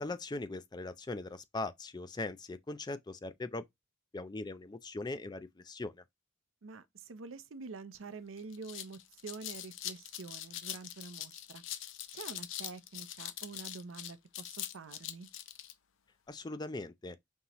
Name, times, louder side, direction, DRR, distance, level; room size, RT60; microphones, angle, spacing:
voice 1, 0.0-3.6 4.1-5.9 16.3-17.2, left 2 dB, 20° left, 0.4 m, -40 dB
voice 2, 6.6-11.6 12.1-15.3, right 4 dB, 70° right, 0.6 m, -47 dB
sound 1, 7.9-8.0 8.4-15.7, left 12 dB, 65° left, 0.6 m, -43 dB
5.4 x 2.9 x 2.9 m
head